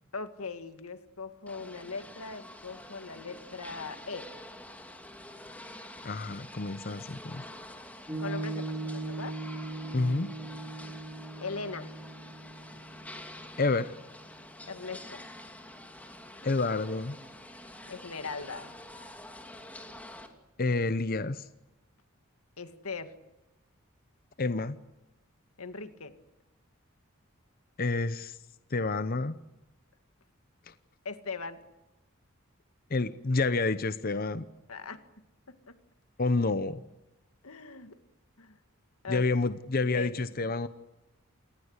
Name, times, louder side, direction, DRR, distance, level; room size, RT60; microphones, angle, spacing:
voice 1, 0.1-4.3 8.2-9.4 11.4-11.9 14.7-15.2 17.9-18.7 22.6-23.1 25.6-26.1 31.0-31.6 34.7-35.1 35.5-35.8 37.4-38.0 38.4-38.6 39.0-39.3 39.9-40.1, left 4 dB, 90° left, 9 dB, 2.2 m, -40 dB
sound 1, 1.5-20.3, left 1 dB, 5° left, 2.7 m, -47 dB
voice 2, 6.0-7.4 9.9-10.3 13.6-13.9 16.4-17.2 20.6-21.5 24.4-24.8 27.8-28.4 28.7-29.4 30.7-30.8 32.9-34.5 36.2-36.8 39.1-40.7, left 3 dB, 45° left, 12 dB, 0.8 m, -29 dB
Piano, 8.1-14.8, right 2 dB, 15° right, 5.5 m, -40 dB
29.0 x 19.5 x 8.2 m, 1.0 s
head